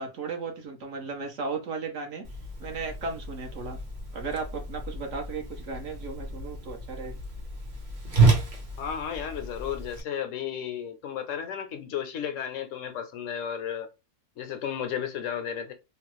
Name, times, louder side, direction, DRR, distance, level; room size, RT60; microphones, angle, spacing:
voice 1, 0.0-2.2 2.6-3.8 4.1-7.2, right 4 dB, 65° right, 1.1 m, -35 dB
Whoosh swoosh swish, 2.2-10.0, right 3 dB, 40° right, 0.9 m, -30 dB
voice 2, 8.8-13.9 14.4-15.7, left 8 dB, 70° left, 0.9 m, -33 dB
3.0 x 2.3 x 2.9 m
omnidirectional pair, 1.5 m